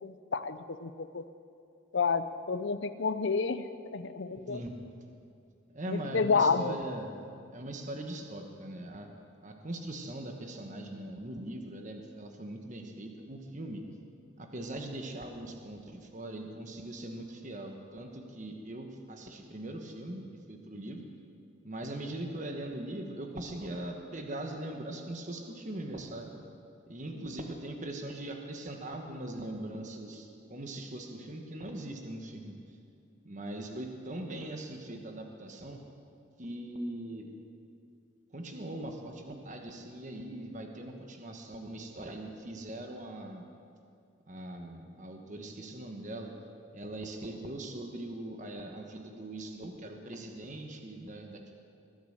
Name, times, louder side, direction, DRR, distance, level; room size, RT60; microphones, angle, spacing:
voice 1, 0.0-1.3 1.9-4.6 5.9-6.7 27.2-27.3, left 5 dB, 60° left, 12 dB, 0.6 m, -30 dB
voice 2, 5.7-7.1 7.5-9.1 9.4-13.8 14.4-21.1 21.6-26.3 26.9-32.6 33.2-35.8 36.4-37.3 38.3-43.5 44.3-46.3 46.7-51.5, right 1 dB, 40° right, 3 dB, 1.3 m, -41 dB
21.5 x 8.0 x 6.6 m, 2.5 s
head